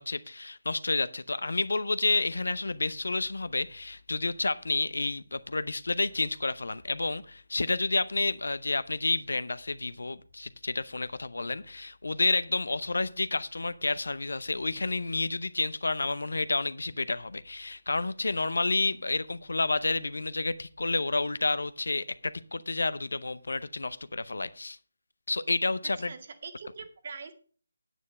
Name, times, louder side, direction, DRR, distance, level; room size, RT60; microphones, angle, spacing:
voice 1, 0.0-24.8 25.3-26.1, left 3 dB, 70° left, 0.7 m, -30 dB
voice 2, 25.8-27.3, right 5 dB, 45° right, 1.9 m, -43 dB
9.2 x 8.5 x 5.3 m
figure-of-eight pair, 155°, 0 cm